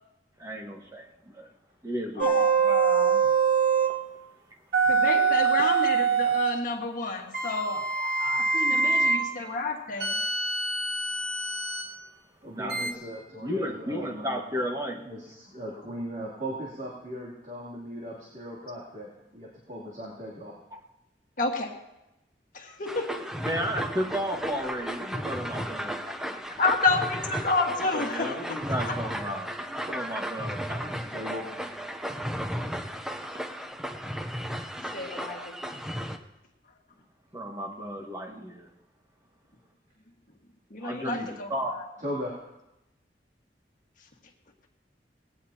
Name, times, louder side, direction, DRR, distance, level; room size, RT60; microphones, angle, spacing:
voice 1, 0.4-1.5 1.8-2.5 8.7-8.9 12.5-12.8 13.4-15.0 23.4-26.4 27.8-31.2 37.3-38.7 40.8-41.7, equal, 20° right, 0 dB, 1.7 m, -34 dB
voice 2, 2.2-3.3 4.9-10.2 21.4-21.7 22.5-23.2 26.6-28.6 28.9-29.0 34.9-35.6 40.7-41.9, left 3 dB, 50° left, 1 dB, 1.7 m, -30 dB
sound 1, 2.2-4.0 4.7-6.6 7.3-9.3 10.0-11.9 12.7-12.9, right 5 dB, 65° right, 1.8 m, -24 dB
voice 3, 12.4-14.6 15.0-20.5 30.9-31.5 42.0-42.3, equal, 45° right, -5 dB, 3.0 m, -38 dB
sound 2, 22.9-36.2, equal, 5° right, 0.7 m, -34 dB
19.5 x 17.0 x 2.9 m, 0.94 s
head